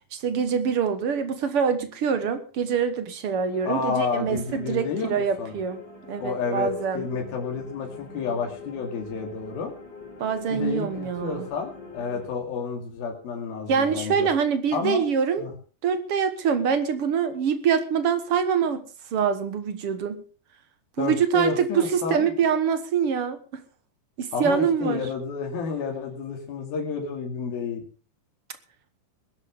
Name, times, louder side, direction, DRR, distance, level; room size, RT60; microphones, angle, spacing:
voice 1, 0.1-5.8 6.1-7.1 10.2-11.5 13.7-15.5 15.8-18.8 19.1-20.2 21.0-23.4 24.2-25.0, right 6 dB, 55° right, 10 dB, 1.6 m, -25 dB
sound 1, 3.4-12.3, left 3 dB, 30° left, 5.1 m, -44 dB
voice 2, 3.7-5.5 6.2-9.7 10.5-14.3 14.7-15.1 15.4-15.5 21.0-22.3 24.3-27.8, left 5 dB, 90° left, 2 dB, 4.3 m, -30 dB
20.5 x 11.5 x 3.6 m, 0.36 s
omnidirectional pair, 4.1 m